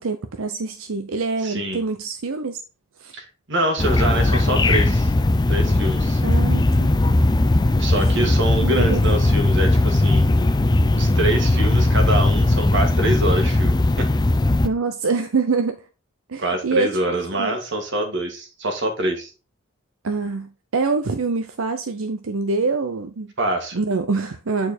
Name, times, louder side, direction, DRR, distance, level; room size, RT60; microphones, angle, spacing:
voice 1, 0.0-2.6 3.0-3.1 6.2-6.9 8.6-9.0 14.6-15.8 16.3-17.0 17.3-17.6 20.0-23.3 23.7-24.7, right 4 dB, 90° right, 0.7 m, -25 dB
voice 2, 1.4-1.8 3.1-5.1 5.5-6.2 7.8-10.4 10.9-14.1 16.4-19.3 23.4-23.8, right 1 dB, 60° right, 1.9 m, -25 dB
sound 1, 3.8-14.7, left 2 dB, 20° left, 0.4 m, -18 dB
8.6 x 4.6 x 4.3 m
head